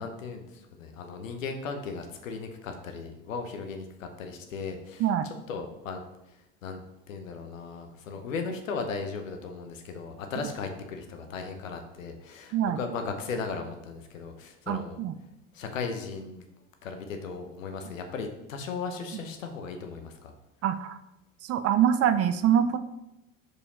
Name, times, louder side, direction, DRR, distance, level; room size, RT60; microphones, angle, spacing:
voice 1, 0.0-6.0 6.3-6.8 7.1-15.0 15.5-16.4 16.8-20.3, left 4 dB, 85° left, 6 dB, 0.9 m, -37 dB
voice 2, 14.7-15.1 20.6-21.0 21.4-22.8, right 9 dB, 40° right, 12 dB, 0.5 m, -24 dB
5.0 x 4.7 x 4.2 m, 0.90 s
hypercardioid pair, 65°, 39 cm